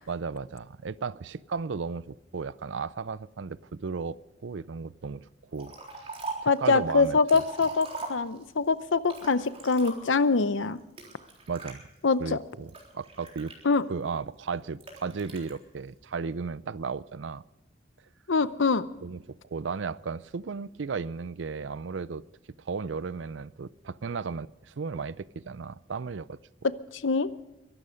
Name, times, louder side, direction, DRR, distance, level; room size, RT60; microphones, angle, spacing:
voice 1, 0.1-4.2 4.4-5.3 5.5-5.7 6.4-7.4 11.5-11.8 12.2-13.5 13.9-17.4 19.0-19.2 19.5-22.2 22.6-26.4, right 5 dB, 75° right, 0.5 m, -35 dB
Liquid, 5.6-6.6 7.0-8.6 9.0-10.3 11.0-11.7 12.3-14.0 14.8-15.5, right 4 dB, 30° right, 3.8 m, -41 dB
voice 2, 6.5-10.8 12.0-12.4 13.6-13.8 18.3-18.8 26.9-27.3, left 4 dB, 90° left, 0.8 m, -24 dB
23.0 x 12.0 x 5.2 m
head